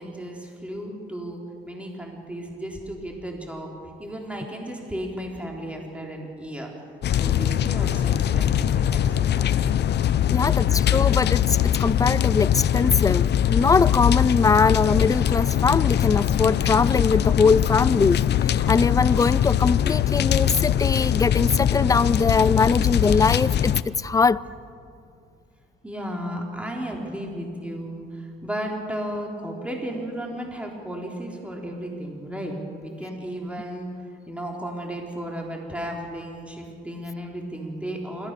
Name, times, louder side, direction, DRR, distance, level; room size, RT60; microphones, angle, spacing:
voice 1, 0.0-3.7 4.0-6.7 7.1-9.0 9.4-9.7 10.3-10.8 25.8-33.9 34.3-38.3, equal, 5° right, 3.7 m, -34 dB
sound 1, 7.0-23.8, left 10 dB, 60° left, 0.6 m, -22 dB
voice 2, 10.3-24.4, left 4 dB, 15° left, 0.4 m, -22 dB
27.5 x 14.5 x 6.8 m
cardioid pair, 90°, 20 cm